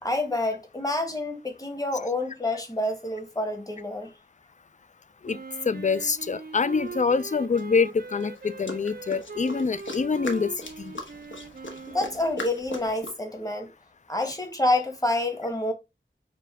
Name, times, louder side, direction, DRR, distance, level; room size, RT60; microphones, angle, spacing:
voice 1, 0.0-4.1 11.9-13.7 14.1-15.7, left 2 dB, 15° left, 1.2 m, -28 dB
Wind instrument woodwind instrument, 5.2-12.4, right 4 dB, 50° right, 0.5 m, -40 dB
voice 2, 5.7-10.5 10.8-10.9, left 5 dB, 40° left, 0.4 m, -25 dB
sound 1, 6.9-7.0 7.6-13.1, left 1 dB, 75° left, 1.0 m, -39 dB
5.0 x 2.2 x 4.7 m
wide cardioid pair, 50°, 20 cm